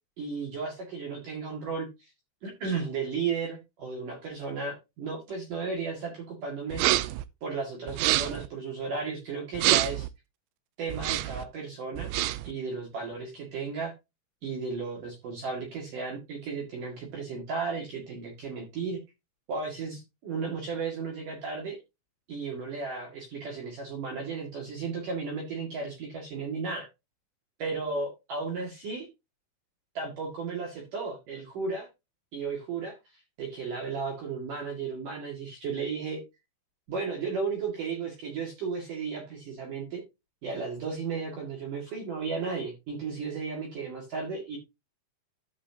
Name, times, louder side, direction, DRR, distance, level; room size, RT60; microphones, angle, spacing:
voice 1, 0.2-2.1 2.4-7.0 7.4-10.1 10.8-12.1 12.4-13.9 14.4-19.0 19.5-21.8 22.3-26.9 27.6-29.1 29.9-31.9 32.3-33.0 33.4-36.2 36.9-40.0 40.4-44.6, right 4 dB, 50° right, 0 dB, 3.0 m, -34 dB
sound 1, 6.7-7.2 7.9-8.5 9.5-10.1 10.9-11.4 12.0-12.5, right 16 dB, 85° right, 2.8 m, -26 dB
14.0 x 5.6 x 2.8 m, 0.24 s
omnidirectional pair, 5.7 m